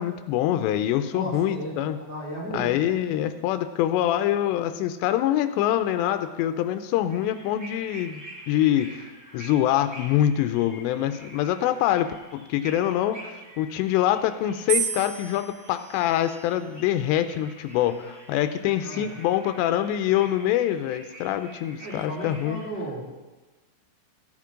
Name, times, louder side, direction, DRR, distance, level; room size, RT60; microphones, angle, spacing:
voice 1, 0.0-2.0 2.5-9.1 9.3-13.2 13.6-22.6, left 12 dB, 90° left, 9 dB, 2.8 m, -25 dB
voice 2, 1.1-2.7 18.8-19.1 21.8-23.1, right 1 dB, 5° left, -6 dB, 1.7 m, -35 dB
sound 1, 6.9-22.7, right 1 dB, 10° right, 0.7 m, -47 dB
sound 2, 14.7-16.9 17.7-18.2, right 7 dB, 85° right, 3.8 m, -33 dB
15.0 x 8.3 x 3.7 m, 1.2 s
omnidirectional pair, 4.9 m